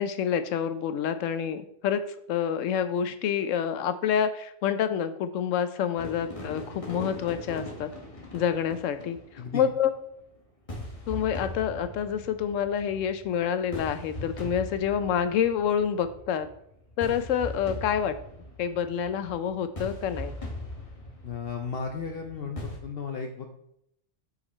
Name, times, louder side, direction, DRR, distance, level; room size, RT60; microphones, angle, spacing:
voice 1, 0.0-2.0 2.3-7.9 8.3-9.2 9.5-9.9 11.1-16.5 17.0-18.2 18.6-20.4, left 8 dB, 90° left, 10 dB, 1.0 m, -27 dB
sound 1, 6.0-9.9 10.7-22.8, left 1 dB, 30° left, 1.1 m, -40 dB
voice 2, 21.2-23.5, left 5 dB, 60° left, 3 dB, 0.8 m, -35 dB
5.2 x 4.9 x 4.2 m, 0.74 s
omnidirectional pair, 1.3 m